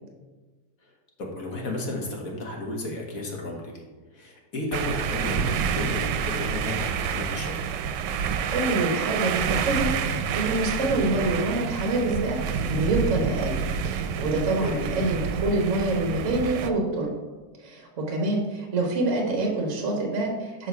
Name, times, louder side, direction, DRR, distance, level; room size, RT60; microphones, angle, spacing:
voice 1, 1.2-3.8 4.1-7.5 14.6-14.8, left 2 dB, 55° left, 0 dB, 1.7 m, -33 dB
sound 1, 4.7-16.7, right 7 dB, 85° right, 1.2 m, -28 dB
voice 2, 8.5-17.1 17.6-20.7, right 2 dB, 50° right, 1 dB, 1.4 m, -26 dB
6.5 x 5.4 x 4.6 m, 1.2 s
omnidirectional pair, 1.8 m